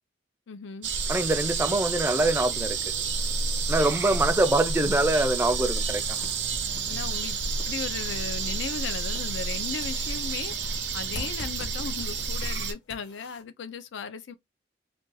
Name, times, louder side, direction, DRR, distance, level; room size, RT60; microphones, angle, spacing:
voice 1, 0.5-0.9 6.9-7.4 7.7-10.5 10.9-14.3, left 5 dB, 85° left, 0.5 m, -36 dB
sound 1, 0.8-12.7, right 5 dB, 70° right, 0.7 m, -30 dB
voice 2, 1.1-2.8 3.7-6.0, right 2 dB, 15° right, 0.4 m, -24 dB
sound 2, 2.1-13.4, left 1 dB, 65° left, 1.1 m, -47 dB
2.5 x 2.3 x 3.9 m
head